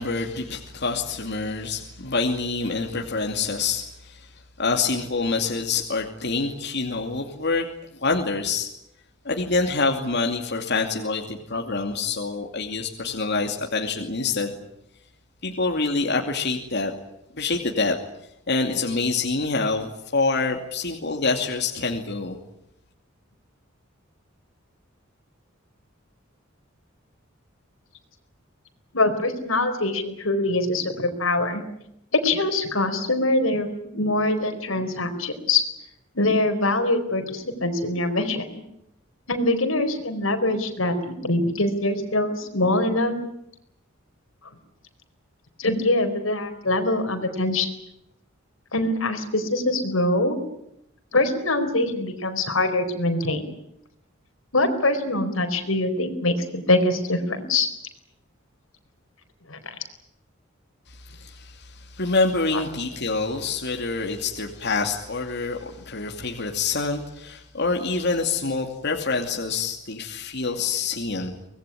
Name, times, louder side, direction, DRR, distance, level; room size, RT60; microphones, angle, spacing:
voice 1, 0.0-4.3 4.6-7.7 7.9-8.7 9.2-14.6 15.4-16.9 17.4-17.9 18.5-22.4 60.9-71.3, left 3 dB, 60° left, 3 dB, 2.6 m, -26 dB
voice 2, 28.9-31.6 32.1-33.7 33.9-35.6 36.1-38.4 39.3-43.1 45.6-47.7 48.7-50.4 51.1-53.4 54.5-57.7 59.5-59.6 62.5-62.6, left 2 dB, 90° left, 7 dB, 4.4 m, -23 dB
24.5 x 20.0 x 9.9 m, 0.80 s
head